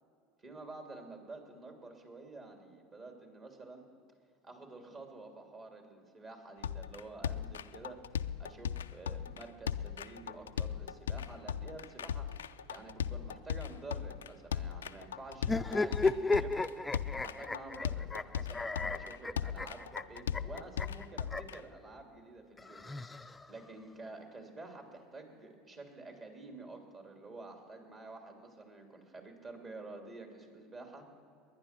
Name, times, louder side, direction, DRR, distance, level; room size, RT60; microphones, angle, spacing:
voice 1, 0.4-3.8 4.4-8.0 8.4-12.3 12.7-16.6 17.1-31.1, right 2 dB, 35° right, 3 dB, 3.1 m, -49 dB
sound 1, 6.6-21.6, left 8 dB, 90° left, 0.3 m, -38 dB
sound 2, 15.4-21.6 22.6-23.7, left 3 dB, 15° left, 0.5 m, -34 dB
21.0 x 9.9 x 6.0 m, 2.3 s
hypercardioid pair, 80°, 0 cm